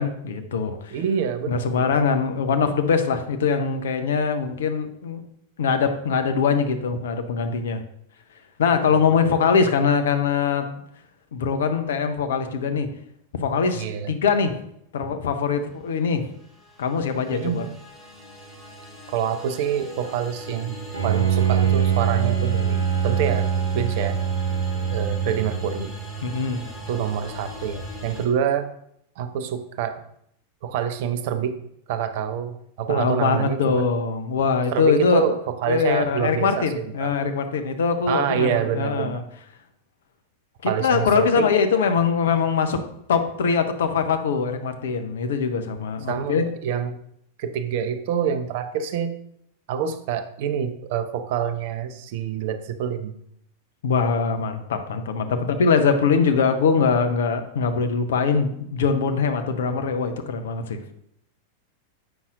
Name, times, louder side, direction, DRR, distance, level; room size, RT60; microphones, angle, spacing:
voice 1, 0.0-1.0 1.5-5.2 5.6-7.8 8.6-10.7 11.3-12.9 13.4-14.6 14.9-16.2 16.8-17.6 26.2-26.6 32.9-35.2 35.7-39.2 40.6-42.8 43.1-46.4 53.8-60.9, left 5 dB, 60° left, 7 dB, 0.6 m, -22 dB
voice 2, 0.9-1.8 8.9-9.0 13.7-14.1 17.3-17.7 19.1-20.8 21.0-23.5 23.7-24.2 24.9-25.9 26.9-28.7 29.2-30.0 30.6-31.6 31.9-33.9 34.7-37.1 38.1-39.2 40.6-41.5 46.1-47.0 47.4-49.1 49.7-53.1, right 8 dB, 50° right, 10 dB, 0.5 m, -26 dB
sound 1, 16.0-28.3, right 2 dB, 15° left, 2.0 m, -39 dB
Bowed string instrument, 20.9-25.9, right 8 dB, 80° right, 0.8 m, -23 dB
7.8 x 5.5 x 2.4 m, 0.72 s
figure-of-eight pair, 90°, 0 cm